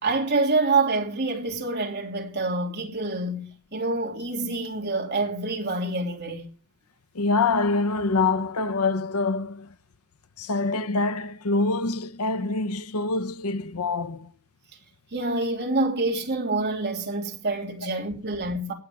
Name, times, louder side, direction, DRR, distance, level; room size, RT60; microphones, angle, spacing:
voice 1, 0.0-6.5 15.1-18.7, right 3 dB, 50° right, 3.0 m, -27 dB
voice 2, 7.1-9.7 10.4-14.3 17.8-17.9, left 3 dB, 80° left, 0.8 m, -25 dB
17.0 x 9.0 x 4.8 m
head